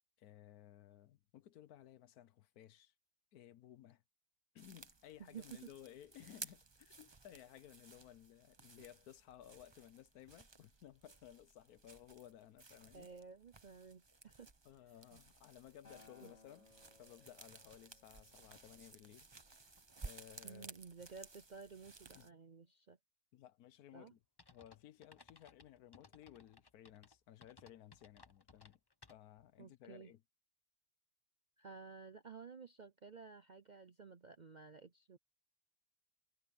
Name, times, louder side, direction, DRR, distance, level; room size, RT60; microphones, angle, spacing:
voice 1, 0.2-2.9 3.3-4.0 4.5-13.1 14.6-16.7 17.0-19.3 19.6-19.7 20.0-20.8 22.1-22.3 23.3-24.2 24.5-28.8 29.1-30.2, left 11 dB, 80° left, 1.2 m, -58 dB
sound 1, 4.6-22.3, right 3 dB, 20° right, 0.8 m, -57 dB
voice 2, 5.2-5.7 12.9-14.5 15.1-15.2 16.2-16.3 20.4-23.0 23.9-24.1 29.6-30.1 31.6-35.2, right 5 dB, 50° right, 0.5 m, -54 dB
Acoustic guitar, 15.8-20.1 21.0-21.1, left 3 dB, 50° left, 2.5 m, -67 dB
sound 2, 24.4-29.5, left 3 dB, 25° left, 0.6 m, -63 dB
omnidirectional pair, 1.6 m